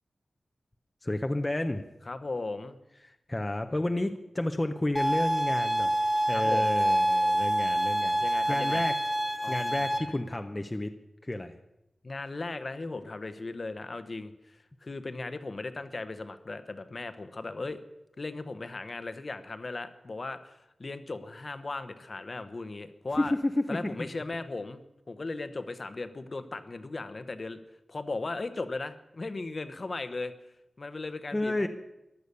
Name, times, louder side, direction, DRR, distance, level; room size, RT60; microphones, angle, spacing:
voice 1, 1.0-1.8 3.1-6.0 6.3-8.2 8.5-8.9 9.5-10.9 11.2-11.5 23.2-23.6 24.0-24.1 31.3-31.7, left 1 dB, 20° left, 6 dB, 0.8 m, -31 dB
voice 2, 2.1-2.8 6.3-6.7 8.2-8.8 9.4-10.1 12.0-17.8 18.2-23.3 23.7-24.8 25.1-27.6 27.9-30.3 30.8-31.7, left 3 dB, 40° left, 10 dB, 1.0 m, -37 dB
sound 1, 5.0-10.0, right 1 dB, 5° right, 1.9 m, -26 dB
15.0 x 11.5 x 6.9 m, 0.88 s
wide cardioid pair, 120°, 0 cm